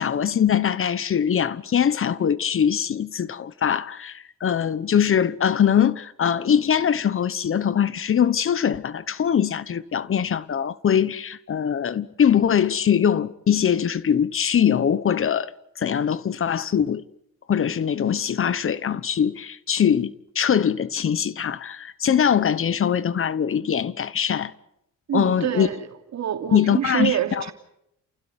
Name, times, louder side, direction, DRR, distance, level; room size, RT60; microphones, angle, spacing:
voice 1, 0.0-15.5 15.8-17.0 17.5-24.5 25.1-25.7 26.5-27.4, left 8 dB, 45° left, 1.1 m, -22 dB
voice 2, 25.1-27.5, right 10 dB, 65° right, 3.1 m, -26 dB
30.0 x 16.0 x 9.8 m
cardioid pair, 90°, 30 cm